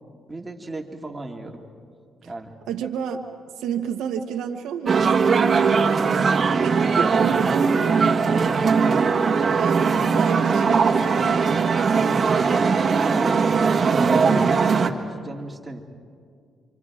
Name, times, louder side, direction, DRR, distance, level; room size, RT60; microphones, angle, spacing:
voice 1, 0.3-1.6 2.3-2.5 5.6-9.1 11.9-15.8, right 2 dB, 15° right, 2 dB, 2.4 m, -35 dB
voice 2, 2.7-3.3 3.6-5.4 6.6-8.0 9.4-11.7, right 8 dB, 85° right, 3 dB, 1.2 m, -30 dB
sound 1, 4.9-14.9, right 5 dB, 40° right, 1.5 m, -20 dB
28.0 x 25.5 x 4.9 m, 2.2 s
cardioid pair, 90°, 0 cm